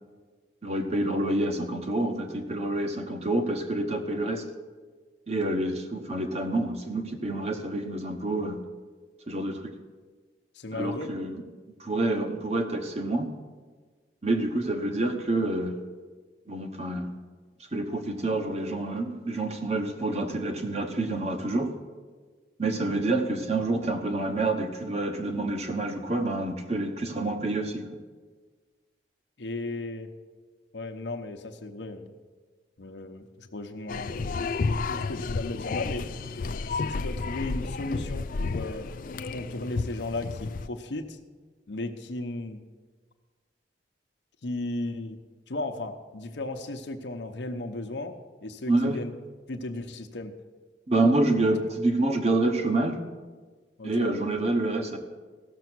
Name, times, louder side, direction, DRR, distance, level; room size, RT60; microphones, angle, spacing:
voice 1, 0.6-4.4 5.3-8.6 9.3-9.6 10.7-11.4 11.8-13.3 14.2-15.7 16.5-17.1 17.7-21.7 22.6-27.8 48.7-49.0 50.9-53.0 53.8-55.0, right 2 dB, 35° right, 5 dB, 1.0 m, -27 dB
voice 2, 10.5-11.1 29.4-30.1 30.7-32.1 32.8-34.2 34.8-36.1 36.7-38.9 39.2-41.2 41.7-42.6 44.4-45.2 45.5-49.1 49.5-50.3 53.8-54.2, left 2 dB, 80° left, 5 dB, 0.8 m, -35 dB
sound 1, 33.9-40.7, left 4 dB, 50° left, 0.4 m, -31 dB
16.0 x 6.9 x 6.1 m, 1.4 s
head